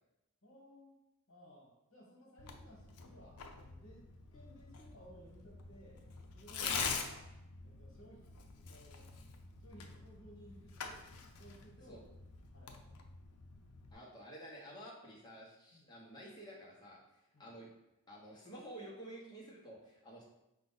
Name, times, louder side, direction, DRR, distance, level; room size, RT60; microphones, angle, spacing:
voice 1, 0.4-0.9 1.3-6.0 6.3-7.3 7.6-9.1 9.6-11.0 11.4-12.0 12.5-13.0 15.7-15.9 17.3-17.5, equal, 65° left, -2 dB, 1.4 m, -59 dB
Tearing, 2.4-13.9, left 5 dB, 90° left, 0.5 m, -45 dB
voice 2, 6.6-6.9 11.9-12.0 13.9-17.0 17.4-17.7 18.1-20.2, right 1 dB, 20° left, -4 dB, 1.0 m, -51 dB
4.8 x 2.5 x 3.9 m, 0.88 s
head